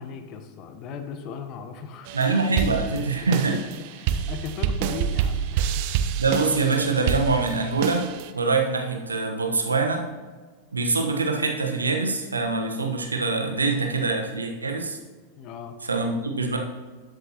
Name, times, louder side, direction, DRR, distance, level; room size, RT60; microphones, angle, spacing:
voice 1, 0.0-2.2 2.9-6.0 15.4-15.8, left 6 dB, 40° left, 7 dB, 1.0 m, -38 dB
sound 1, 2.1-8.3, right 8 dB, 45° right, 0.6 m, -28 dB
voice 2, 2.1-3.6 6.2-8.1 8.3-10.0 10.7-15.0 15.8-16.6, right 3 dB, 75° right, 3 dB, 1.1 m, -24 dB
12.5 x 8.0 x 2.9 m, 1.4 s
figure-of-eight pair, 90°, 0 cm